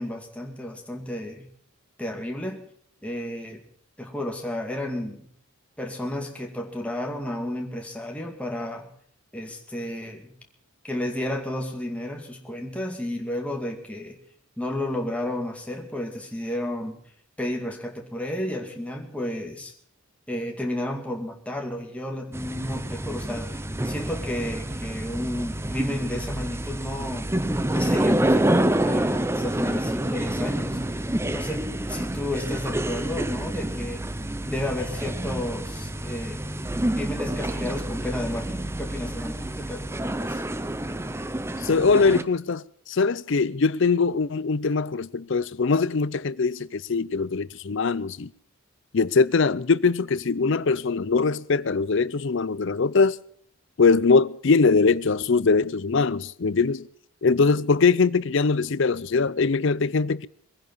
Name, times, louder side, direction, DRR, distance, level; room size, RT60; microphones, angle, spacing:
voice 1, 0.0-1.5 2.0-2.6 3.0-3.6 4.0-5.3 5.8-8.9 9.3-10.3 10.8-14.2 14.6-17.0 17.4-19.7 20.3-23.5 23.8-27.3 27.7-31.0 31.3-34.0 34.5-36.5 37.0-40.4, left 1 dB, 5° left, 2.2 m, -32 dB
sound 1, 22.3-42.2, right 1 dB, 10° right, 0.6 m, -28 dB
voice 2, 41.6-42.6 42.9-48.3 48.9-53.2 53.8-56.9 57.2-60.3, left 4 dB, 55° left, 0.5 m, -22 dB
22.5 x 10.5 x 5.4 m
head